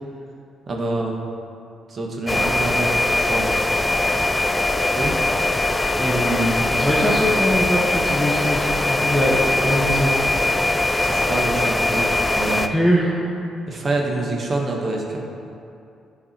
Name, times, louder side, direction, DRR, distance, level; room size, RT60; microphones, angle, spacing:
voice 1, 0.7-1.2 1.9-3.5 4.9-5.1 11.0-12.1 12.3-12.7 13.7-15.2, right 2 dB, 45° right, 0 dB, 1.3 m, -26 dB
sound 1, 2.3-12.7, left 2 dB, 15° left, 0.4 m, -21 dB
voice 2, 6.0-10.2 12.7-13.2, equal, ahead, -6 dB, 1.1 m, -22 dB
10.0 x 4.8 x 4.3 m, 2.5 s
cardioid pair, 90°, 0 cm